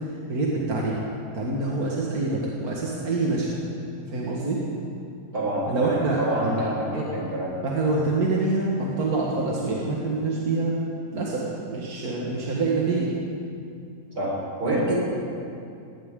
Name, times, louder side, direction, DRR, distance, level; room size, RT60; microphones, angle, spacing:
voice 1, 0.3-1.0 1.3-3.5 4.1-4.6 5.7-6.6 6.9-7.0 7.6-10.7 11.1-11.4 11.7-13.1, right 3 dB, 65° right, -4 dB, 2.2 m, -26 dB
voice 2, 5.3-5.9 6.2-7.5 14.2-14.3 14.6-15.0, right 1 dB, 85° right, -5 dB, 5.4 m, -26 dB
19.5 x 18.5 x 3.8 m, 2.5 s
omnidirectional pair, 1.7 m